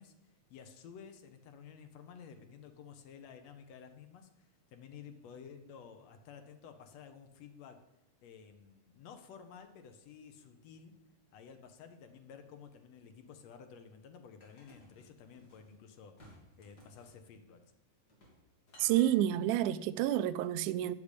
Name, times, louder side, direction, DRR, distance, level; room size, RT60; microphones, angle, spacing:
voice 1, 0.0-7.8 8.2-11.0 11.3-16.2 16.6-17.6, left 7 dB, 65° left, 1.9 m, -53 dB
sound 1, 14.4-15.7 16.2-17.2 18.1-18.4 18.7-19.2, left 1 dB, 30° left, 2.6 m, -58 dB
voice 2, 18.8-20.9, right 12 dB, 80° right, 1.9 m, -29 dB
8.6 x 6.8 x 8.3 m
omnidirectional pair, 3.8 m